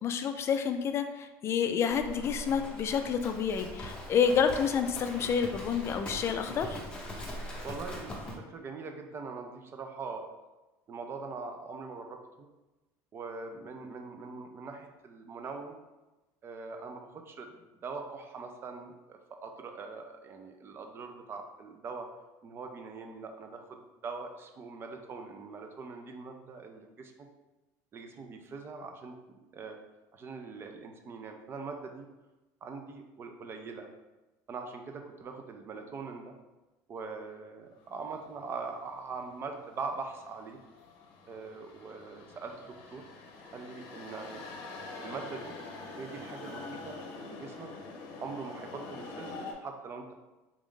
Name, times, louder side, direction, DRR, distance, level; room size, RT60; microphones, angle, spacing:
voice 1, 0.0-6.8, left 7 dB, 35° left, 7 dB, 0.3 m, -29 dB
Livestock farm animals working animals, 1.9-8.4, left 1 dB, 10° left, 0.8 m, -42 dB
voice 2, 7.6-10.3 10.9-12.5 13.1-15.8 16.4-22.1 22.4-27.3 27.9-29.2 29.5-29.8 30.1-32.1 32.6-33.9 34.5-36.3 36.9-40.6 41.3-43.1 43.5-44.4 45.0-45.5 46.0-47.7 48.2-50.1, right 4 dB, 30° right, 5 dB, 0.5 m, -42 dB
sound 1, 37.9-49.5, left 3 dB, 65° left, 0.7 m, -46 dB
3.5 x 2.5 x 3.6 m, 1.1 s
cardioid pair, 125°, 8 cm